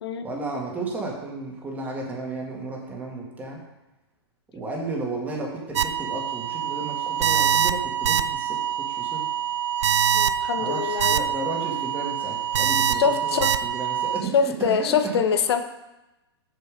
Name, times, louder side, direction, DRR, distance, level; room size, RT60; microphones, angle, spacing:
voice 1, 0.2-3.6 4.5-9.3 10.6-15.0, right 3 dB, 10° right, -2 dB, 2.0 m, -33 dB
sound 1, 5.8-14.2, right 9 dB, 80° right, 0.5 m, -25 dB
voice 2, 10.1-11.2 12.9-13.5 14.3-15.6, left 6 dB, 65° left, 8 dB, 1.0 m, -24 dB
6.8 x 6.7 x 5.1 m, 0.99 s
hypercardioid pair, 135°, 14 cm